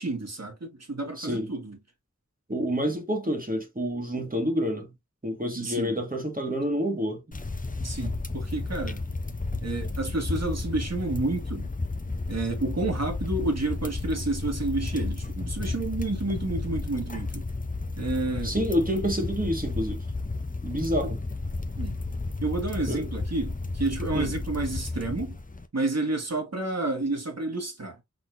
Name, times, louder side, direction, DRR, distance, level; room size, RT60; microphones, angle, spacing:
voice 1, 0.0-1.8 5.6-5.9 7.8-9.0 9.6-11.7 12.3-17.4 18.0-18.6 21.0-21.1 21.8-22.0 22.4-25.4 25.7-28.0, right 2 dB, 60° right, 1.8 m, -30 dB
voice 2, 1.2-1.5 2.5-4.9 5.2-7.4 18.4-20.0 20.6-21.2 22.9-23.1 24.1-24.3, equal, 30° right, 1.5 m, -28 dB
sound 1, 7.3-25.6, left 3 dB, 30° left, 0.7 m, -32 dB
4.2 x 3.9 x 2.6 m
wide cardioid pair, 50°, 30 cm